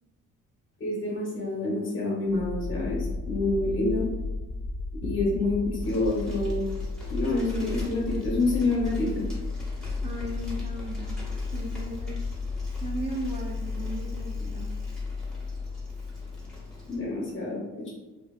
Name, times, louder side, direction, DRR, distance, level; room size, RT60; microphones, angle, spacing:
voice 1, 0.8-4.1 5.0-6.6 7.1-9.2 16.9-17.9, left 2 dB, 40° left, -4 dB, 1.0 m, -27 dB
sound 1, 2.3-17.1, left 3 dB, 70° left, 1.1 m, -34 dB
Bicycle, 5.8-17.0, equal, ahead, 0.8 m, -47 dB
voice 2, 10.0-11.2 11.5-12.2 12.8-14.8, right 1 dB, 20° right, -2 dB, 0.3 m, -36 dB
2.7 x 2.0 x 2.3 m, 1.1 s
cardioid pair, 90°, 30 cm